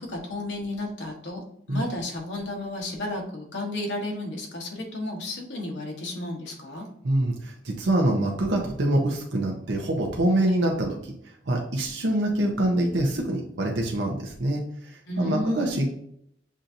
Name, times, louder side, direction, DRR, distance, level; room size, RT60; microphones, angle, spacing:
voice 1, 0.0-1.4 1.7-6.9 10.4-10.6 15.1-15.9, left 1 dB, 85° left, 0 dB, 1.2 m, -32 dB
voice 2, 7.0-14.6 14.9-15.9, right 1 dB, 85° right, 0 dB, 0.8 m, -25 dB
7.3 x 2.7 x 2.6 m, 0.69 s
head